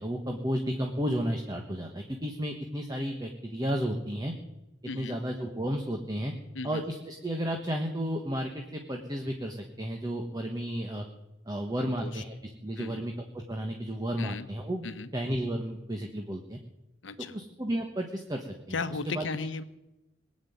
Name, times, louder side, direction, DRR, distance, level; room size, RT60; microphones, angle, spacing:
voice 1, 0.0-4.3 4.9-6.3 6.6-11.0 11.5-12.3 12.6-14.8 15.1-16.6 17.2-18.8 19.1-19.2, equal, 20° right, 3 dB, 1.3 m, -32 dB
voice 2, 4.9-5.2 6.5-6.8 11.8-12.2 12.8-13.0 14.2-14.5 14.8-15.1 17.0-17.4 18.7-19.6, left 4 dB, 80° left, 11 dB, 1.0 m, -36 dB
20.5 x 7.6 x 9.2 m, 0.96 s
head